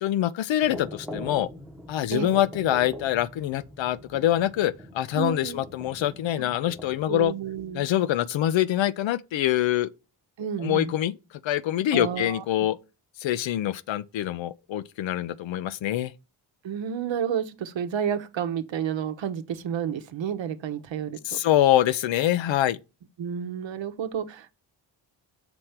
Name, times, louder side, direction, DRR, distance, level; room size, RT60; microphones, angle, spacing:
voice 1, 0.0-1.5 1.9-7.3 7.7-9.9 10.6-11.1 11.4-12.8 13.2-16.1 21.2-22.8, left 12 dB, 70° left, 0.6 m, -25 dB
sound 1, 0.6-7.3, equal, ahead, 0.9 m, -42 dB
voice 2, 5.2-5.6 6.4-6.5 7.1-7.8 10.4-10.9 11.9-12.7 16.6-21.4 23.2-24.6, right 8 dB, 65° right, 0.9 m, -31 dB
6.1 x 3.3 x 5.6 m
cardioid pair, 60°, 49 cm